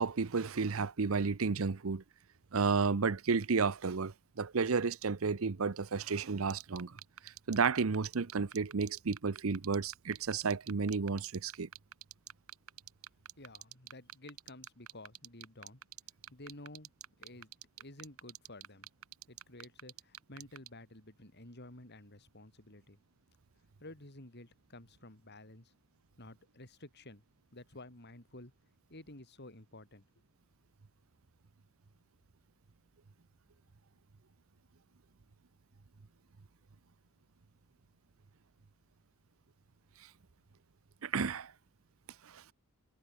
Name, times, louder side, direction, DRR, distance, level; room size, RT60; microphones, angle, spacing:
voice 1, 0.0-2.0 2.5-7.0 7.2-11.7 41.0-41.5 42.3-42.5, right 5 dB, 70° right, 0.7 m, -32 dB
sound 1, 6.5-20.7, right 11 dB, 90° right, 3.8 m, -46 dB
voice 2, 13.4-15.8 16.3-16.9 17.2-17.5 17.8-18.9 19.3-23.0 23.8-25.7 26.2-27.2 27.5-28.5 28.9-30.0, left 1 dB, 50° left, 5.0 m, -52 dB
head